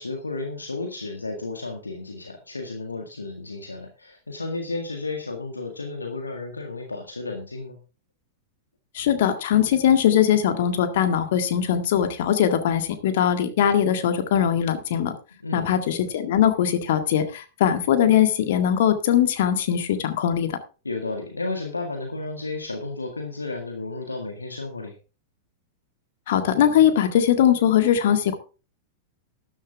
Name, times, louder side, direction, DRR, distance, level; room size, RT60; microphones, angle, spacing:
voice 1, 0.0-7.8 15.4-15.7 20.8-25.0, left 3 dB, 80° left, 4 dB, 1.8 m, -32 dB
voice 2, 8.9-15.1 15.5-20.6 26.3-28.4, left 9 dB, 55° left, 9 dB, 1.8 m, -21 dB
13.0 x 11.0 x 3.6 m, 0.33 s
figure-of-eight pair, 95°, 0 cm